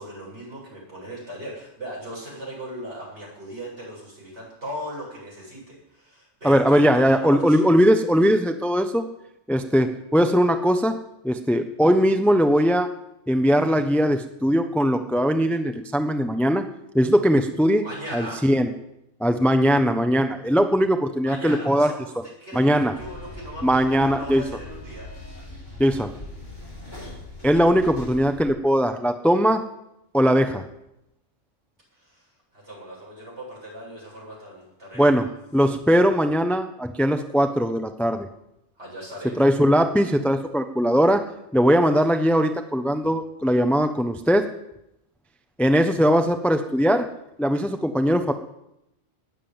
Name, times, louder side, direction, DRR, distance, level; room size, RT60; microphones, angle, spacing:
voice 1, 0.0-7.7 17.8-18.4 21.2-25.1 31.9-35.3 38.8-39.4, equal, 60° right, -3 dB, 7.8 m, -38 dB
voice 2, 6.4-9.1 9.5-10.9 11.2-12.9 13.3-16.6 16.9-17.8 18.1-18.7 19.2-21.9 22.5-22.9 23.6-24.4 25.8-26.1 27.4-29.6 30.1-30.6 35.0-35.3 35.5-38.3 39.4-41.2 41.5-44.5 45.6-47.1 47.4-48.3, equal, ahead, 7 dB, 0.8 m, -20 dB
sound 1, 22.9-28.4, left 2 dB, 45° left, 7.2 m, -40 dB
19.5 x 7.6 x 8.9 m, 0.83 s
omnidirectional pair, 1.3 m